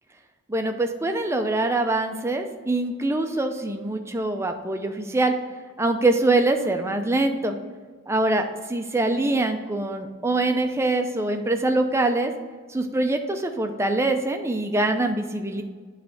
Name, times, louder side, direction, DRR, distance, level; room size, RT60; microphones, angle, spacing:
voice 1, 0.5-5.3 5.8-7.6 8.1-8.4 8.7-12.3 12.7-15.6, right 2 dB, 15° right, 5 dB, 0.6 m, -24 dB
9.4 x 3.3 x 6.6 m, 1.5 s
head